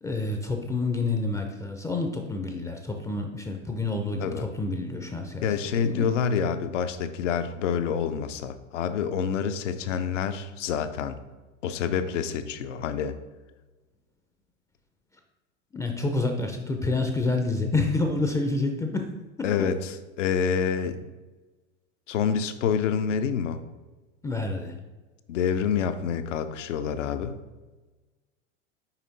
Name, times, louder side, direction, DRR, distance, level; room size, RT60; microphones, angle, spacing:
voice 1, 0.0-6.1 15.7-19.1 19.4-19.7 24.2-24.7, left 3 dB, 10° left, 3 dB, 0.4 m, -28 dB
voice 2, 5.4-11.2 11.6-13.2 19.4-21.0 22.1-23.6 25.3-27.4, left 7 dB, 85° left, 10 dB, 0.6 m, -27 dB
5.7 x 4.2 x 4.0 m, 1.2 s
hypercardioid pair, 110°, 36 cm